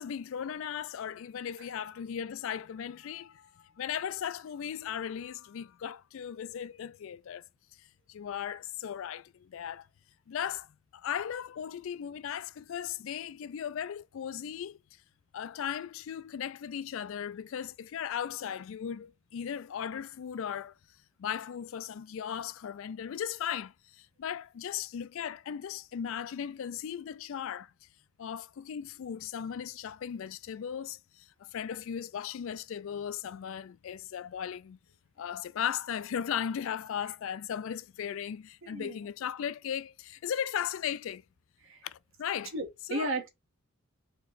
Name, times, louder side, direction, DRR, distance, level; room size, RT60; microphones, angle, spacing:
voice 1, 0.0-7.4 8.1-9.9 10.3-14.8 15.3-20.7 21.2-27.7 28.2-34.8 35.2-41.2 41.8-42.5 42.9-43.1, left 8 dB, 65° left, 0.3 m, -37 dB
voice 2, 38.6-39.0 41.6-41.8 42.5-43.3, right 2 dB, 65° right, 1.4 m, -35 dB
4.4 x 3.0 x 3.9 m
head